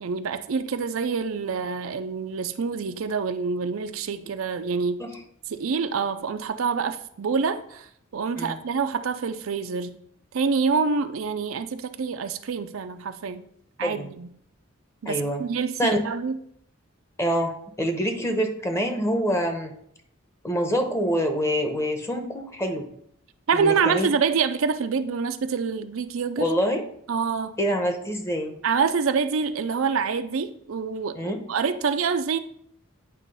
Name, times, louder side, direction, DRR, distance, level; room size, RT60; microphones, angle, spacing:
voice 1, 0.0-5.0 5.5-10.0 10.3-13.4 13.8-14.3 15.0-16.4 23.5-26.5 27.1-27.5 28.6-32.4, right 5 dB, 80° right, 0.5 m, -26 dB
voice 2, 13.8-14.1 15.0-15.4 15.8-16.0 17.2-19.7 20.4-22.9 23.5-24.1 26.4-26.8 27.6-28.6 31.2-31.4, equal, 15° left, 0.9 m, -25 dB
9.0 x 3.0 x 5.4 m
head